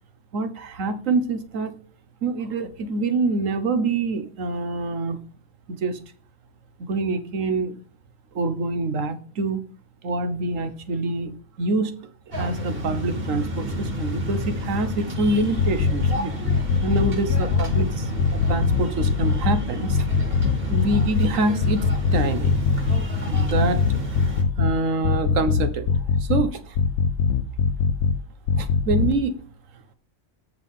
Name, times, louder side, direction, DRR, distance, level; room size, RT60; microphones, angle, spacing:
voice 1, 0.3-1.7 2.2-5.2 5.7-6.0 6.8-7.7 8.3-9.6 10.0-11.3 11.6-12.0 12.4-16.3 16.8-20.1 20.4-22.6 23.2-24.0 24.6-26.8 28.6-29.4, right 3 dB, 75° right, 10 dB, 1.4 m, -26 dB
sound 1, 12.3-24.4, left 1 dB, 45° right, 2.2 m, -30 dB
sound 2, 15.4-16.1 16.5-17.9 18.2-19.6 19.9-21.3 21.6-23.0 23.3-24.7 25.0-26.4 26.8-28.1 28.5-29.1, left 6 dB, 75° left, 1.0 m, -21 dB
8.2 x 6.7 x 3.6 m, 0.42 s
omnidirectional pair, 1.4 m